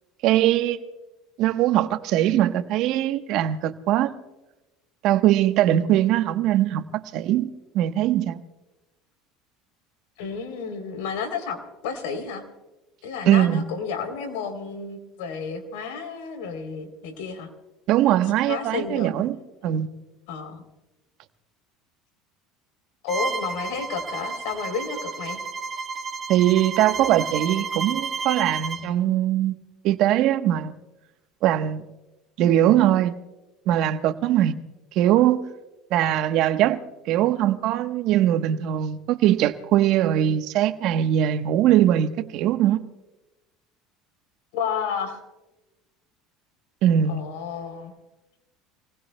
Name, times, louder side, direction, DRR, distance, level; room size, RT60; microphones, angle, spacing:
voice 1, 0.2-0.8 1.4-4.2 5.0-8.4 13.3-13.7 17.9-19.4 19.6-19.9 26.3-30.7 31.4-31.9 32.4-33.2 33.6-34.6 34.9-35.5 35.9-42.9 46.8-47.2, right 12 dB, 60° right, 1.1 m, -21 dB
voice 2, 10.2-12.4 13.0-17.5 18.5-19.2 20.3-20.6 23.0-25.4 44.5-45.2 47.1-47.9, left 6 dB, 85° left, 3.4 m, -31 dB
Bowed string instrument, 23.1-28.9, right 4 dB, 30° right, 1.7 m, -31 dB
28.0 x 19.5 x 2.2 m
supercardioid pair, 110°, 0 cm